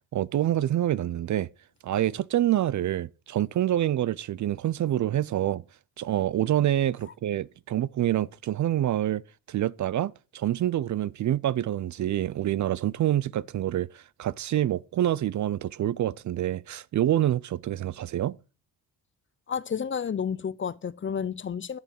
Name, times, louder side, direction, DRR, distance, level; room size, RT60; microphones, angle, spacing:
voice 1, 0.1-1.5 1.8-5.6 6.0-9.2 9.5-18.4, right 12 dB, 50° right, 0.5 m, -27 dB
voice 2, 19.5-21.8, left 7 dB, 30° left, 0.6 m, -31 dB
13.0 x 6.9 x 6.1 m
cardioid pair, 115°, 38 cm